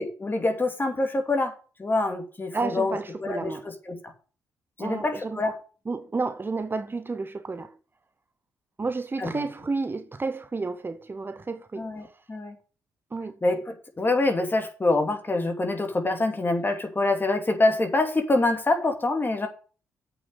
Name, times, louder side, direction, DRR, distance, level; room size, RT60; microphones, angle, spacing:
voice 1, 0.0-1.5 1.8-4.0 4.8-5.6 9.2-9.5 11.7-12.6 13.4-19.5, left 2 dB, 30° left, 2.6 m, -26 dB
voice 2, 2.5-3.6 4.8-5.4 5.9-7.7 8.8-11.9 13.1-13.3, right 3 dB, 30° right, 0.8 m, -31 dB
8.1 x 6.1 x 6.5 m
hypercardioid pair, 45°, 7 cm